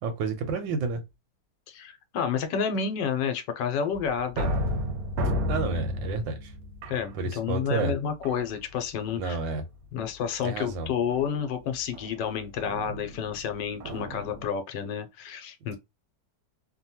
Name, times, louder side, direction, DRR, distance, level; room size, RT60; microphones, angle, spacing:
voice 1, 0.0-1.0 5.5-6.5 7.1-7.9 9.1-9.6 10.4-10.9, right 4 dB, 90° right, 1.5 m, -30 dB
voice 2, 1.7-4.6 6.9-9.4 9.9-15.8, left 7 dB, 80° left, 1.3 m, -30 dB
sound 1, 3.9-7.7 8.2-8.8 9.3-9.7 11.1-14.5, equal, 65° right, 1.0 m, -33 dB
3.3 x 2.2 x 2.8 m
omnidirectional pair, 2.0 m